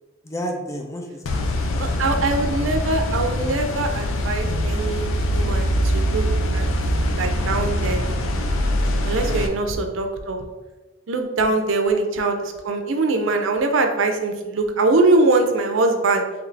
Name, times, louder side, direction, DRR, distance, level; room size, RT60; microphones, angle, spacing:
voice 1, 0.2-2.7 9.1-9.5 11.4-11.6, equal, 15° left, 1 dB, 0.5 m, -34 dB
sound 1, 1.3-9.5, equal, 85° left, 0.5 m, -23 dB
voice 2, 1.8-6.2 6.5-6.7 7.2-8.0 9.0-10.4 11.1-16.2, right 3 dB, 75° right, 5 dB, 0.5 m, -22 dB
3.8 x 2.9 x 3.3 m, 1.2 s
head